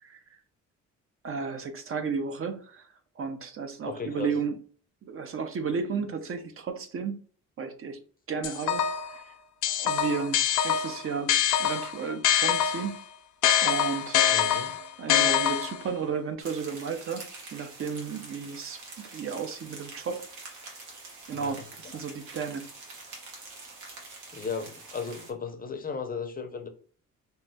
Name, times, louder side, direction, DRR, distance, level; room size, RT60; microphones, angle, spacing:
voice 1, 1.2-2.9 3.2-4.6 5.0-7.2 7.6-8.0 8.3-9.3 9.7-10.4 10.6-11.3 11.6-13.0 13.6-14.2 15.0-20.3 21.3-22.6, right 5 dB, 45° right, 0.5 m, -33 dB
voice 2, 3.9-4.3 14.3-14.7 21.3-21.6 24.3-26.7, left 5 dB, 30° left, 0.5 m, -35 dB
sound 1, 8.4-9.1 9.6-13.0 13.4-15.9, left 10 dB, 80° left, 0.5 m, -25 dB
sound 2, 16.4-25.3, right 3 dB, 80° right, 1.1 m, -46 dB
3.1 x 2.3 x 2.7 m
cardioid pair, 90°, 30 cm